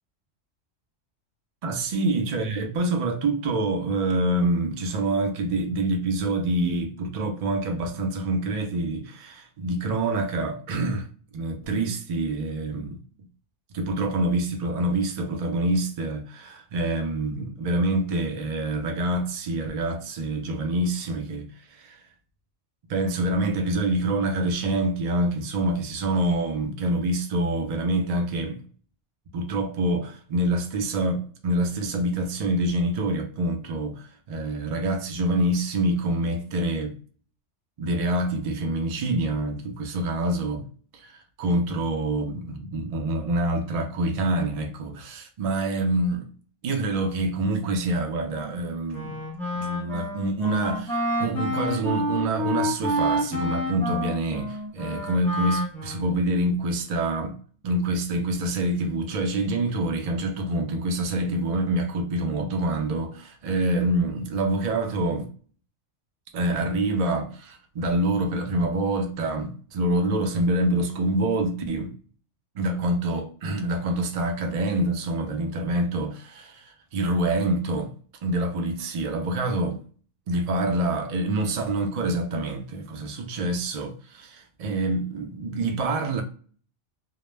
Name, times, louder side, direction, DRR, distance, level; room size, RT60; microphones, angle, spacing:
voice 1, 1.6-11.1 11.3-13.0 13.7-22.0 22.9-28.6 29.3-37.0 37.8-40.7 40.9-46.3 46.6-49.2 49.5-57.4 57.6-65.3 66.3-71.9 72.5-77.9 78.2-79.8 80.3-86.2, right 1 dB, 75° right, 0.3 m, -26 dB
Wind instrument woodwind instrument, 48.9-56.2, equal, ahead, 0.7 m, -29 dB
2.1 x 2.0 x 3.2 m
omnidirectional pair, 1.3 m